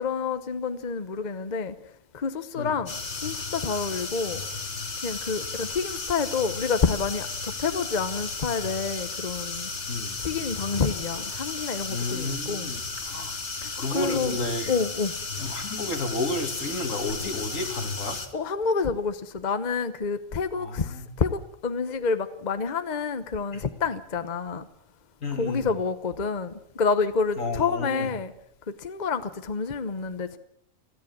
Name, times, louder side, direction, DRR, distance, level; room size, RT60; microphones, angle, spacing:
voice 1, 0.0-1.7 2.1-4.4 5.0-9.7 10.2-12.7 13.6-14.4 14.7-15.1 18.3-24.6 25.4-28.3 28.8-30.4, left 5 dB, 35° left, 11 dB, 1.0 m, -28 dB
sound 1, 2.9-18.3, left 4 dB, 60° left, 2.2 m, -34 dB
voice 2, 11.9-13.3 13.8-14.7 15.4-18.2 20.6-21.1 23.5-23.6 25.2-25.7 27.4-28.1, left 2 dB, 80° left, 5 dB, 2.9 m, -31 dB
29.5 x 10.5 x 8.7 m, 0.70 s
omnidirectional pair, 1.4 m